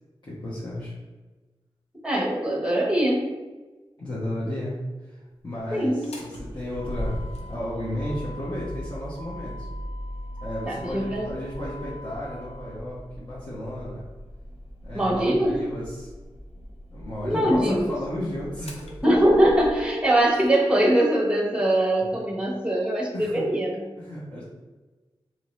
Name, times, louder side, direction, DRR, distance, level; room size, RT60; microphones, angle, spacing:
voice 1, 0.2-0.9 4.0-9.7 10.4-14.0 14.8-16.1 16.6-16.7 16.9-18.9 22.1-22.2 23.1-23.3 24.0-24.4, left 1 dB, 50° left, -9 dB, 1.1 m, -33 dB
voice 2, 2.0-3.3 5.7-6.0 10.7-11.3 14.9-15.6 17.2-17.9 19.0-23.7, right 1 dB, 10° right, -2 dB, 1.0 m, -22 dB
Motor vehicle (road), 5.9-20.6, equal, 80° left, 0.5 m, -39 dB
2.9 x 2.7 x 3.1 m, 1.2 s
cardioid pair, 45°, 10 cm